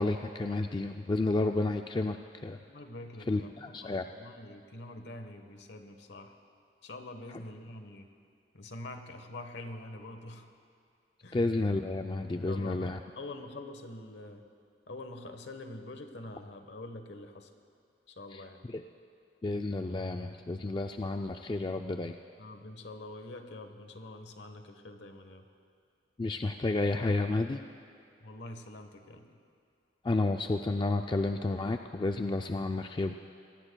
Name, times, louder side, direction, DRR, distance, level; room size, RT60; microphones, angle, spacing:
voice 1, 0.0-2.2 2.4-2.6 3.3-4.0 11.3-13.0 18.3-18.4 18.7-18.8 19.4-22.1 26.2-27.6 30.0-33.1, left 2 dB, 25° left, 5 dB, 0.3 m, -31 dB
voice 2, 2.7-6.4 6.8-8.1 8.5-10.5 11.2-11.4 12.3-14.5 14.9-17.5 18.1-18.7 22.4-25.5 28.2-29.4, left 2 dB, 65° left, 7 dB, 1.1 m, -45 dB
25.0 x 19.5 x 2.3 m, 2.5 s
head